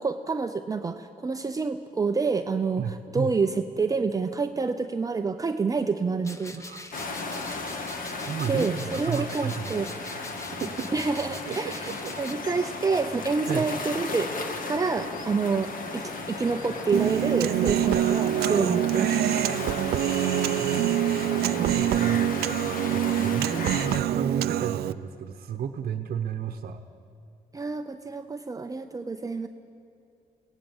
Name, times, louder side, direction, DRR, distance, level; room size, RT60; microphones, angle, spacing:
voice 1, 0.0-6.6 8.5-9.9 10.9-11.9 12.2-14.3 14.6-19.4 27.5-29.5, right 4 dB, 20° right, 7 dB, 0.7 m, -28 dB
voice 2, 2.8-3.3 6.5-6.9 8.3-9.7 10.6-10.9 11.5-12.1 13.4-13.7 20.6-22.2 22.5-26.8, right 7 dB, 55° right, 1 dB, 1.0 m, -33 dB
sound 1, 6.2-12.3, left 2 dB, 20° left, 1.1 m, -43 dB
sound 2, 6.9-24.0, left 3 dB, 55° left, 2.0 m, -35 dB
Human voice, 16.9-24.9, right 12 dB, 75° right, 0.5 m, -25 dB
23.5 x 18.0 x 7.3 m, 2.4 s
cardioid pair, 110°, 17 cm